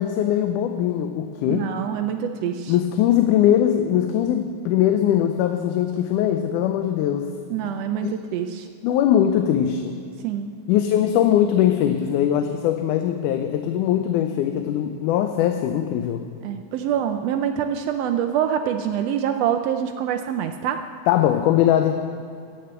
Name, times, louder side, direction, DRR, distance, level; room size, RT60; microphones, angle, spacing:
voice 1, 0.0-1.7 2.7-7.3 7.6-7.7 8.0-8.2 8.8-10.0 10.7-16.3 21.1-21.9, left 10 dB, 90° left, 6 dB, 2.2 m, -21 dB
voice 2, 1.5-2.7 7.5-8.7 10.2-10.5 16.4-20.8, right 9 dB, 90° right, 7 dB, 1.4 m, -25 dB
14.5 x 6.8 x 8.9 m, 2.3 s
omnidirectional pair, 3.5 m